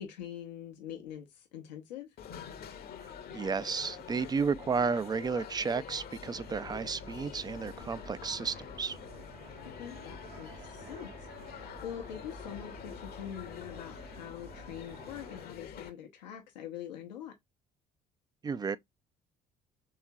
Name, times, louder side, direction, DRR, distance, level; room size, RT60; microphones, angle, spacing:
voice 1, 0.0-2.1 9.6-11.1 11.8-17.3, left 10 dB, 80° left, 0.7 m, -44 dB
sound 1, 2.2-15.9, left 7 dB, 45° left, 0.8 m, -46 dB
voice 2, 3.0-9.0 18.4-18.8, right 5 dB, 20° right, 0.3 m, -33 dB
sound 2, 6.2-15.5, right 1 dB, 85° right, 2.1 m, -51 dB
4.6 x 3.6 x 2.7 m
hypercardioid pair, 55°, 21 cm